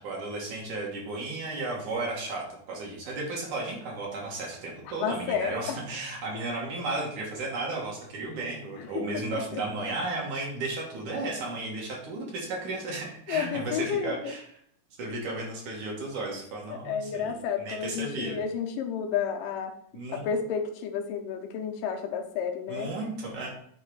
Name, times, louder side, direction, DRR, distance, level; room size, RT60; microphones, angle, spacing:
voice 1, 0.0-14.6 15.0-17.3 17.6-18.4 19.9-20.3 22.7-23.5, right 2 dB, 65° right, -3 dB, 2.9 m, -34 dB
voice 2, 5.0-5.8 8.8-9.0 9.3-9.6 13.3-14.3 16.7-19.7 20.1-22.9, left 7 dB, 85° left, 4 dB, 2.5 m, -31 dB
8.7 x 3.3 x 4.7 m, 0.68 s
omnidirectional pair, 3.9 m